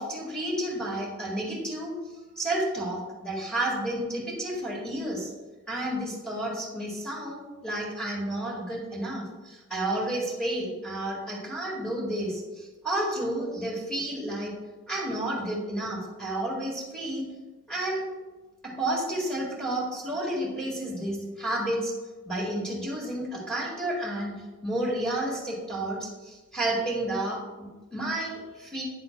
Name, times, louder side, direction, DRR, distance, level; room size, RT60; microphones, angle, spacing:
voice 1, 0.0-1.9 2.4-5.3 5.7-14.5 14.9-17.2 17.7-18.0 18.6-21.9 22.2-24.3 24.6-28.8, right 1 dB, 5° left, -4 dB, 1.9 m, -31 dB
9.1 x 7.5 x 2.2 m, 1.2 s
head